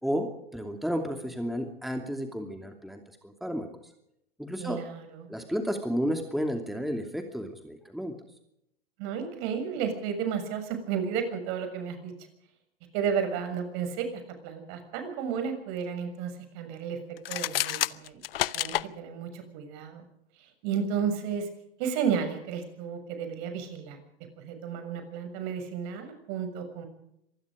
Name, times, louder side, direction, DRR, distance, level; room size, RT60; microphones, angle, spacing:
voice 1, 0.0-3.7 4.4-4.8 5.3-8.1, equal, ahead, 4 dB, 2.7 m, -32 dB
voice 2, 4.6-5.3 9.0-12.1 12.9-18.2 18.5-20.0 20.4-21.5 21.8-24.0 24.4-26.9, right 7 dB, 50° right, 7 dB, 6.8 m, -32 dB
sound 1, 17.2-18.9, left 13 dB, 70° left, 0.9 m, -29 dB
26.0 x 19.5 x 5.1 m, 0.77 s
hypercardioid pair, 105°, 30 cm